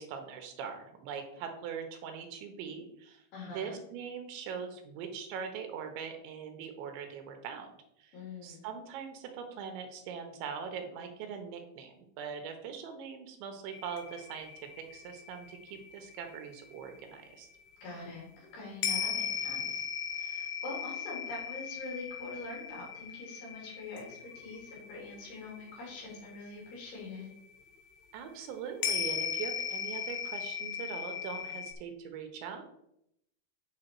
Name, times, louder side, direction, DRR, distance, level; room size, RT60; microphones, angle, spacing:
voice 1, 0.0-7.7 8.0-8.2 8.4-17.5 28.1-32.7, right 7 dB, 80° right, 5 dB, 3.1 m, -42 dB
voice 2, 3.3-3.8 8.1-8.6 17.8-19.9 20.1-27.3, left 2 dB, 60° left, -4 dB, 4.9 m, -44 dB
sound 1, 13.7-17.3 18.8-27.0 27.3-27.4 28.8-31.7, left 8 dB, 80° left, 2.2 m, -37 dB
8.8 x 5.8 x 4.5 m, 0.77 s
omnidirectional pair, 5.5 m